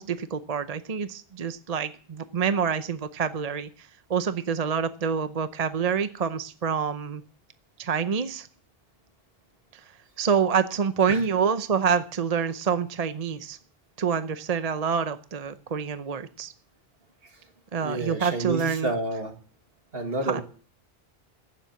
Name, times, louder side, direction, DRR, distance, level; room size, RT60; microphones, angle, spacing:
voice 1, 0.0-7.2 7.8-8.5 10.2-13.6 14.0-16.5 17.7-18.9 20.2-20.4, right 6 dB, 45° right, 11 dB, 0.7 m, -27 dB
voice 2, 17.8-19.3 19.9-20.4, right 2 dB, 65° right, 5 dB, 2.3 m, -29 dB
15.5 x 7.4 x 8.1 m, 0.43 s
omnidirectional pair, 1.0 m